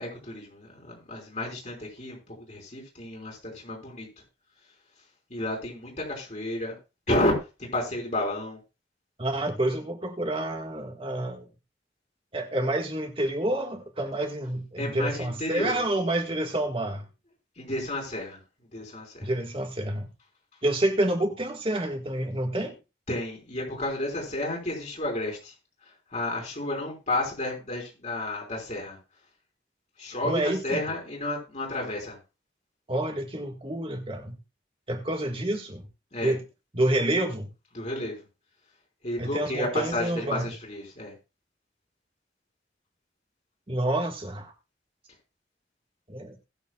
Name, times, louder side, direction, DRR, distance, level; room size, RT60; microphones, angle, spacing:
voice 1, 0.0-4.1 5.3-6.8 7.1-8.6 14.8-15.8 17.6-18.4 18.7-19.3 23.1-25.5 26.1-29.0 30.0-32.2 36.1-36.3 37.7-38.2 39.0-41.1, left 1 dB, 40° left, 5.2 m, -31 dB
voice 2, 9.2-11.5 12.3-17.0 19.2-20.1 20.6-22.7 30.2-30.8 32.9-34.3 34.9-35.8 36.2-36.4 36.7-37.5 39.2-40.5 43.7-44.5 46.1-46.4, right 1 dB, 30° right, 1.7 m, -28 dB
21.0 x 7.2 x 2.4 m
head